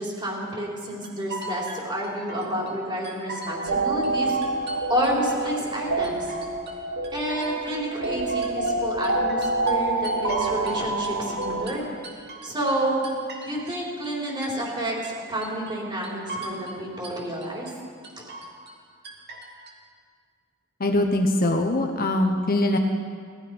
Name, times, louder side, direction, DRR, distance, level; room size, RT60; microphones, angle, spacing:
voice 1, 0.0-4.4 4.7-6.3 7.1-11.9 12.4-13.0 13.4-17.7 18.2-18.3, right 1 dB, 25° right, -3 dB, 4.1 m, -29 dB
sound 1, 1.0-2.7 3.0-3.7 4.0-5.8 6.0-6.8 7.0-10.8 11.0-13.8 14.0-14.8 15.0-15.8 16.0-16.8 17.0-17.7 18.0-18.8 19.0-19.7, right 2 dB, 50° right, 2.5 m, -39 dB
sound 2, 3.5-11.7, right 2 dB, 85° right, 1.4 m, -27 dB
voice 2, 20.8-22.8, left 1 dB, 45° left, 4 dB, 1.1 m, -22 dB
18.5 x 14.0 x 5.4 m, 2.2 s
head